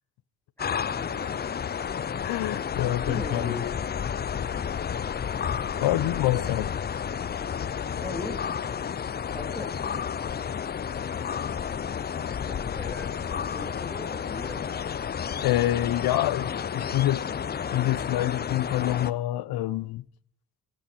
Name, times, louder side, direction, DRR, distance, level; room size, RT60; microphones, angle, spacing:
sound 1, 0.6-19.1, left 7 dB, 30° left, 0.4 m, -31 dB
voice 1, 0.6-1.5 2.8-3.7 8.0-8.5 9.3-9.7 12.5-14.8, left 2 dB, 5° left, 3.1 m, -39 dB
voice 2, 2.2-3.6 5.8-6.7 15.4-17.2 17.7-20.0, left 14 dB, 85° left, 0.6 m, -26 dB
14.0 x 11.5 x 4.3 m
cardioid pair, 80°, 36 cm